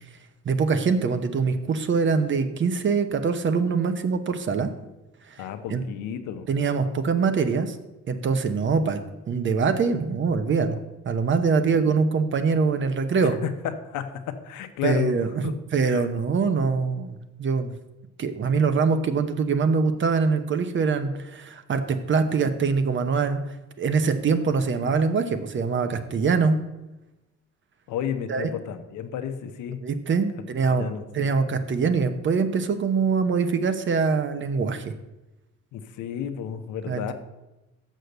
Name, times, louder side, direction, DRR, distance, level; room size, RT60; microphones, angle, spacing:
voice 1, 0.4-4.7 5.3-5.4 5.7-5.8 6.5-7.8 8.1-9.0 9.3-10.8 11.1-13.4 14.8-15.4 15.7-17.7 18.2-23.4 23.8-26.6 28.3-28.5 29.8-30.9 31.1-34.8 36.9-37.1, right 5 dB, 40° right, 10 dB, 0.8 m, -23 dB
voice 2, 5.4-6.5 11.7-11.8 13.2-15.1 15.4-15.5 15.8-16.0 24.8-24.9 27.9-29.8 30.7-31.3 35.7-37.1, left 8 dB, 80° left, 8 dB, 0.9 m, -32 dB
6.5 x 6.4 x 6.6 m, 1.0 s
cardioid pair, 105°, 29 cm